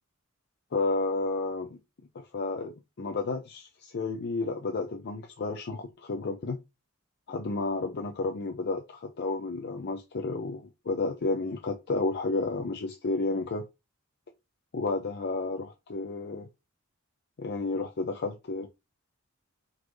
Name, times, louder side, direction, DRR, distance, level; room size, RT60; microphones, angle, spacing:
voice 1, 0.7-1.8 2.1-6.6 7.3-13.6 14.7-16.5 17.4-18.7, left 3 dB, 55° left, 0.5 m, -31 dB
3.9 x 2.6 x 4.6 m
head